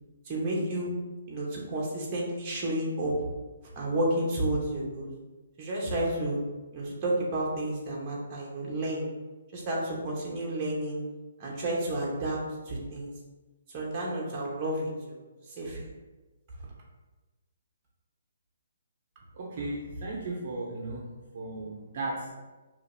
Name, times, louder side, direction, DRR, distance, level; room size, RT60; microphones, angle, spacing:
voice 1, 0.3-0.9 1.3-3.3 3.8-5.1 5.6-6.4 6.7-9.0 9.5-11.0 11.4-12.4 12.7-13.1 13.7-15.2 15.6-15.9, right 1 dB, 20° right, -4 dB, 0.9 m, -31 dB
voice 2, 19.3-21.0 21.3-22.4, right 2 dB, 45° right, -2 dB, 0.5 m, -35 dB
5.0 x 2.8 x 2.6 m, 1.2 s
hypercardioid pair, 170°, 0 cm